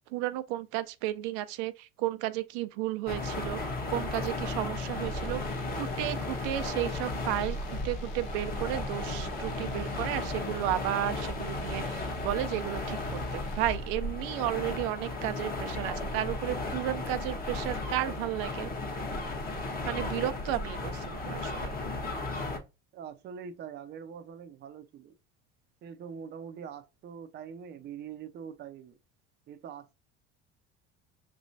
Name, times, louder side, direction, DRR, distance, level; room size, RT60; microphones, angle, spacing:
voice 1, 0.1-3.6 3.9-7.6 7.8-18.7 19.8-21.8, right 14 dB, 85° right, 0.5 m, -33 dB
sound 1, 3.1-22.6, left 2 dB, 30° left, 1.1 m, -35 dB
sound 2, 4.7-13.8, right 4 dB, 80° left, 1.0 m, -47 dB
voice 2, 22.9-25.1 25.8-29.0 29.5-29.9, right 7 dB, 35° right, 0.5 m, -43 dB
6.0 x 3.1 x 2.7 m
supercardioid pair, 115°, 29 cm